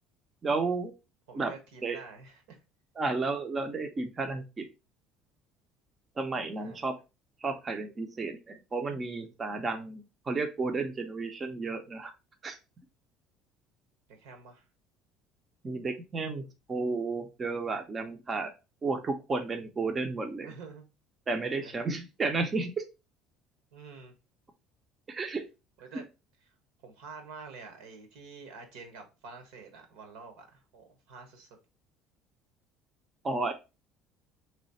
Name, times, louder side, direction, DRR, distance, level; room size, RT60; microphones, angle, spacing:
voice 1, 0.4-0.9 1.3-1.5 1.8-2.0 3.0-4.6 6.2-7.0 7.4-12.1 12.4-12.6 15.6-18.5 18.8-20.5 21.3-22.8 25.1-25.5 33.2-33.5, right 3 dB, 20° right, 0.5 m, -32 dB
voice 2, 1.3-2.6 6.6-6.8 14.1-14.7 20.4-20.8 21.4-21.7 23.7-24.1 25.8-26.0 26.5-26.6 26.8-31.5, right 4 dB, 85° right, 1.3 m, -48 dB
3.5 x 3.1 x 4.0 m
cardioid pair, 165°, 0 cm